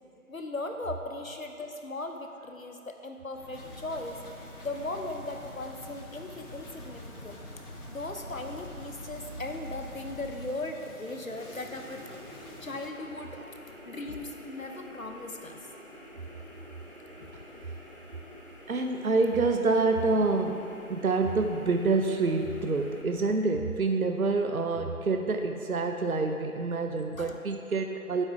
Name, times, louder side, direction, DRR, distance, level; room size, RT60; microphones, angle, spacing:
voice 1, 0.3-4.2 4.6-7.4 7.9-12.1 12.3-13.4 13.7-15.6 17.2-17.3 27.2-27.4, left 2 dB, 65° left, 4 dB, 0.9 m, -38 dB
sound 1, 3.3-10.4, equal, 45° left, 2.2 m, -45 dB
sound 2, 3.5-12.9, left 1 dB, 85° left, 1.5 m, -51 dB
sound 3, 11.3-23.0, equal, 35° right, 1.0 m, -48 dB
voice 2, 18.7-20.6 20.9-28.3, right 3 dB, 70° right, 5 dB, 0.7 m, -27 dB
9.1 x 7.7 x 4.7 m, 2.7 s
figure-of-eight pair, 175°, 44 cm